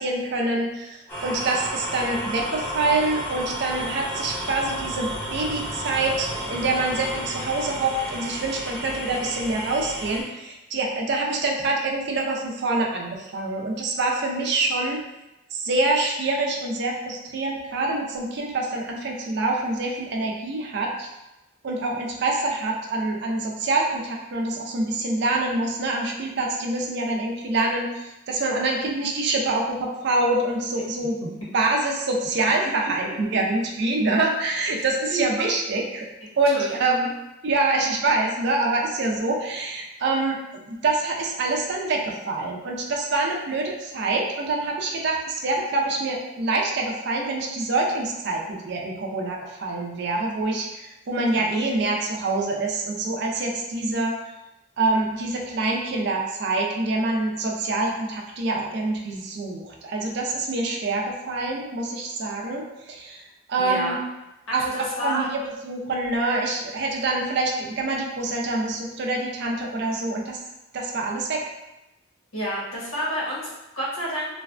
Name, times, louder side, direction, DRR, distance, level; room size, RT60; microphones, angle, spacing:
voice 1, 0.0-15.0 15.5-21.1 21.6-31.2 31.5-36.1 36.4-37.1 37.4-40.4 40.7-54.2 54.8-64.0 64.5-70.4 70.7-71.4, right 2 dB, 55° right, 0 dB, 0.4 m, -26 dB
sound 1, 1.1-10.2, equal, 10° left, 0.6 m, -32 dB
voice 2, 35.0-35.6 36.5-37.1 51.3-51.5 63.6-64.0 64.5-65.3 72.3-74.4, equal, 90° left, -7 dB, 1.1 m, -30 dB
3.2 x 2.1 x 2.4 m, 0.98 s
head